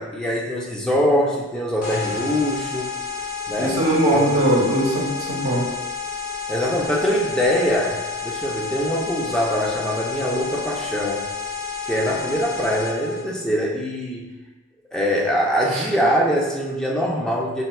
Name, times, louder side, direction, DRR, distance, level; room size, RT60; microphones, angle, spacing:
voice 1, 0.0-2.9 3.5-3.8 4.1-4.2 6.5-11.2 11.9-14.3 14.9-17.6, equal, 5° left, -3 dB, 0.3 m, -23 dB
sound 1, 1.8-13.2, left 5 dB, 45° left, 0.7 m, -30 dB
voice 2, 3.6-5.7 15.7-15.9, right 1 dB, 90° right, -2 dB, 0.8 m, -20 dB
4.0 x 2.2 x 2.2 m, 1.1 s
head